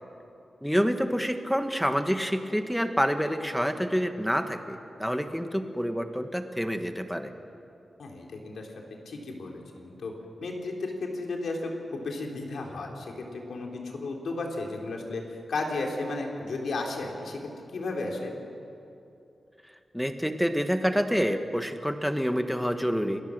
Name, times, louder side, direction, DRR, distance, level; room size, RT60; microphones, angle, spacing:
voice 1, 0.6-7.3 19.9-23.2, equal, ahead, 7 dB, 1.4 m, -27 dB
voice 2, 8.0-8.7 9.1-10.1 10.4-15.2 15.5-17.4 17.7-18.3, left 3 dB, 80° left, 0 dB, 3.9 m, -34 dB
28.0 x 21.0 x 6.6 m, 2.8 s
wide cardioid pair, 150°, 0 cm